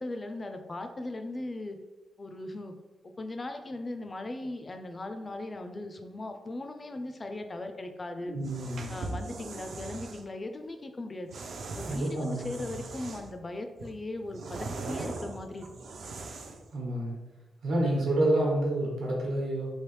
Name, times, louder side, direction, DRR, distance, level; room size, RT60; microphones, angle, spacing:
voice 1, 0.0-1.8 2.2-2.7 3.2-8.4 8.9-11.3 11.7-15.7, left 2 dB, 25° left, 6 dB, 0.3 m, -38 dB
voice 2, 8.3-8.9 11.9-12.6 16.7-17.2 17.6-19.7, right 1 dB, 85° right, -3 dB, 1.0 m, -28 dB
sound 1, 8.4-10.2 11.3-13.4 13.8-16.7, right 3 dB, 60° right, 0.3 m, -40 dB
3.2 x 2.7 x 3.0 m, 1.2 s
wide cardioid pair, 135°, 0 cm